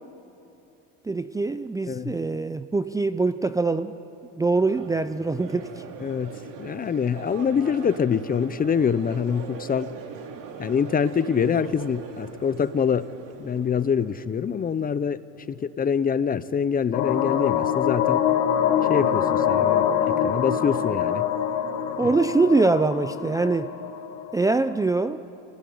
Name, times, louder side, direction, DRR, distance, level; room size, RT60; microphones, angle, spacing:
voice 1, 1.0-4.0 4.4-5.8 22.0-23.7 24.3-25.2, right 3 dB, 10° right, 11 dB, 0.5 m, -23 dB
Crowd, 4.5-14.7, right 5 dB, 60° right, 3.2 m, -41 dB
voice 2, 6.0-9.9 10.6-13.1 13.4-15.2 15.6-18.2 18.9-21.3, left 7 dB, 25° left, 15 dB, 0.7 m, -25 dB
sound 1, 16.9-24.5, left 9 dB, 80° left, 2.9 m, -24 dB
26.5 x 17.5 x 9.4 m, 2.9 s
supercardioid pair, 110°, 37 cm